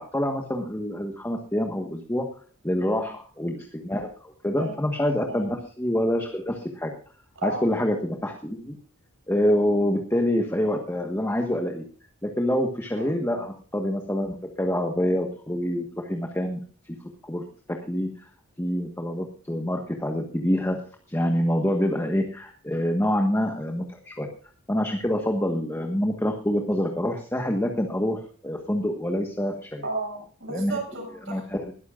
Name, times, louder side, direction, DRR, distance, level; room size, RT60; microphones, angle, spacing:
voice 1, 0.0-2.3 2.6-6.9 7.4-8.8 9.3-11.8 12.2-16.6 17.2-18.1 18.6-20.8 21.1-24.3 24.7-29.9 30.5-30.8 31.3-31.7, equal, 10° left, 3 dB, 1.3 m, -26 dB
voice 2, 13.0-13.5 29.8-31.4, right 2 dB, 60° right, 2 dB, 6.9 m, -34 dB
20.5 x 12.5 x 2.5 m, 0.41 s
head